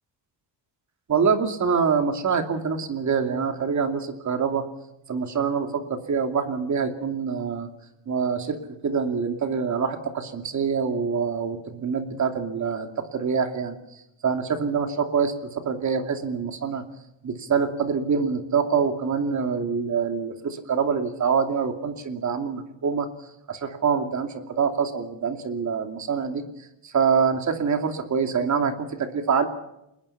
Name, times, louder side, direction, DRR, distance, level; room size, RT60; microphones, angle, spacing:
voice 1, 1.1-4.6 5.1-7.7 8.1-8.6 8.8-13.8 14.2-16.8 17.2-23.1 23.5-26.4 26.8-29.5, right 6 dB, 40° right, 6 dB, 2.8 m, -25 dB
30.0 x 21.0 x 5.8 m, 0.84 s
wide cardioid pair, 180°, 44 cm